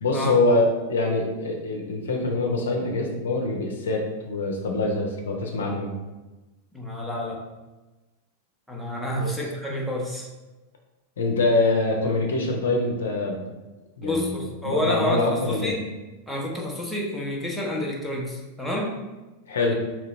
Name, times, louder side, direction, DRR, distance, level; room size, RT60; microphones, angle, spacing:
voice 1, 0.0-5.9 9.2-9.3 11.2-13.4 14.0-14.4 14.6-15.8 19.5-19.7, left 2 dB, 65° left, 1 dB, 0.7 m, -24 dB
voice 2, 6.7-7.4 8.7-10.3 14.0-15.8 16.3-19.0 19.7-19.8, left 1 dB, ahead, -3 dB, 0.8 m, -29 dB
3.9 x 3.0 x 4.3 m, 1.1 s
figure-of-eight pair, 90°, 0 cm